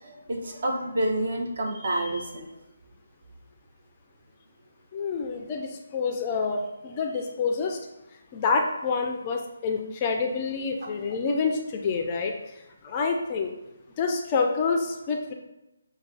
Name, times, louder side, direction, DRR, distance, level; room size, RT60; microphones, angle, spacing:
voice 1, 0.0-2.5 10.8-10.9, right 1 dB, 50° right, 1 dB, 0.9 m, -29 dB
voice 2, 4.9-7.8 8.3-13.5 14.0-15.3, left 4 dB, 20° left, 3 dB, 0.4 m, -27 dB
6.2 x 2.3 x 3.3 m, 0.96 s
hypercardioid pair, 165°, 0 cm